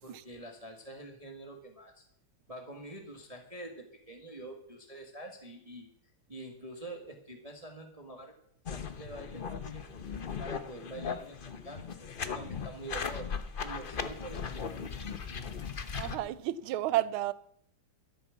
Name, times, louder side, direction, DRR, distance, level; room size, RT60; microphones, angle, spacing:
voice 1, 0.0-2.1 2.5-5.9 6.3-8.3 8.7-9.9 10.4-13.3 13.6-14.9, right 1 dB, 20° right, 1.5 m, -46 dB
sound 1, 8.7-16.2, left 6 dB, 80° left, 0.4 m, -38 dB
voice 2, 15.9-17.3, right 13 dB, 75° right, 1.5 m, -31 dB
12.0 x 10.0 x 7.1 m
omnidirectional pair, 2.4 m